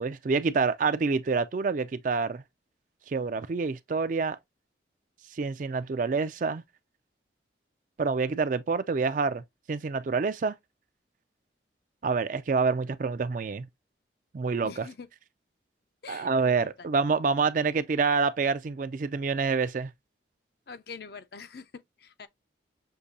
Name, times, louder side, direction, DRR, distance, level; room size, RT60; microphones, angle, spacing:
voice 1, 0.0-2.4 3.1-4.4 5.4-6.6 8.0-9.4 9.7-10.6 12.0-13.7 14.3-14.9 16.1-19.9, right 4 dB, 45° right, 0.3 m, -27 dB
voice 2, 14.6-15.1 16.0-16.7 20.7-22.3, left 5 dB, 55° left, 0.5 m, -44 dB
6.5 x 2.7 x 2.6 m
head